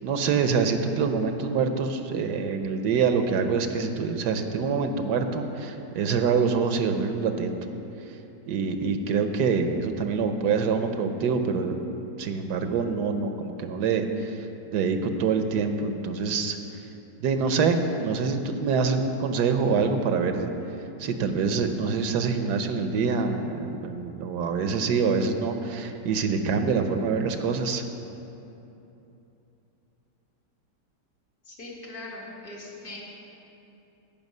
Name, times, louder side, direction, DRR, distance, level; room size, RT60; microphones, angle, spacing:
voice 1, 0.0-7.5 8.5-11.8 12.2-14.5 14.7-16.8 17.2-20.5 21.0-27.8, right 5 dB, 75° right, 7 dB, 1.2 m, -25 dB
voice 2, 31.5-33.0, left 2 dB, 60° left, -5 dB, 2.4 m, -40 dB
16.5 x 5.6 x 5.4 m, 2.9 s
omnidirectional pair, 1.9 m